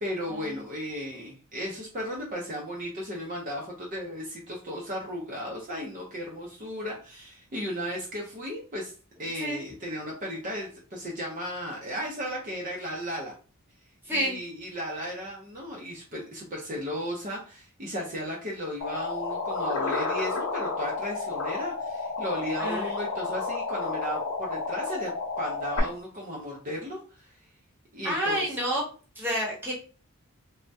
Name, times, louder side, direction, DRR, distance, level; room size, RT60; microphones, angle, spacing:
voice 1, 0.0-8.9 9.2-13.3 14.1-27.4 27.9-28.4, equal, 35° right, -2 dB, 0.5 m, -35 dB
voice 2, 14.0-14.4 22.6-22.9 28.0-28.8 29.2-29.7, equal, 10° right, -4 dB, 0.9 m, -28 dB
sound 1, 18.8-25.8, left 3 dB, 80° left, 0.7 m, -31 dB
3.3 x 2.1 x 2.6 m, 0.38 s
head